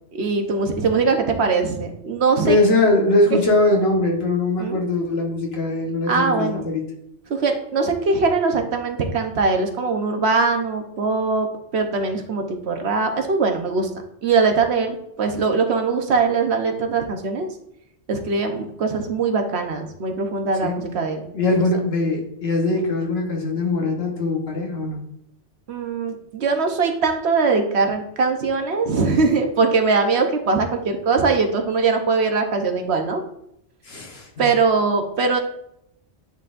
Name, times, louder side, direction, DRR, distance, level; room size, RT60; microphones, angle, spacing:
voice 1, 0.1-2.6 4.6-4.8 6.1-6.6 7.3-11.5 11.7-13.9 14.2-17.5 18.1-21.3 25.7-33.2 34.4-35.4, right 4 dB, 65° right, 4 dB, 1.1 m, -21 dB
voice 2, 2.4-6.8 20.6-20.8 21.3-25.0 33.8-34.5, left 2 dB, 60° left, -1 dB, 1.4 m, -21 dB
10.0 x 4.1 x 2.5 m, 0.78 s
omnidirectional pair, 1.2 m